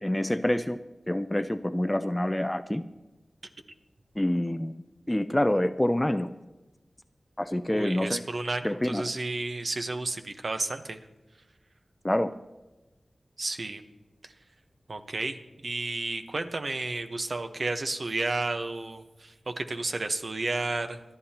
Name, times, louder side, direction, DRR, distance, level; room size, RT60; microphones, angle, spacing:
voice 1, 0.0-0.8 1.1-2.8 4.2-4.7 5.1-6.3 7.4-8.2 8.6-9.0 12.0-12.3, left 1 dB, 15° left, 10 dB, 0.5 m, -26 dB
voice 2, 7.7-11.0 13.4-13.8 14.2-14.3 14.9-21.0, right 2 dB, 60° right, 6 dB, 1.1 m, -32 dB
26.5 x 10.5 x 2.9 m, 1.1 s
wide cardioid pair, 65°, 0 cm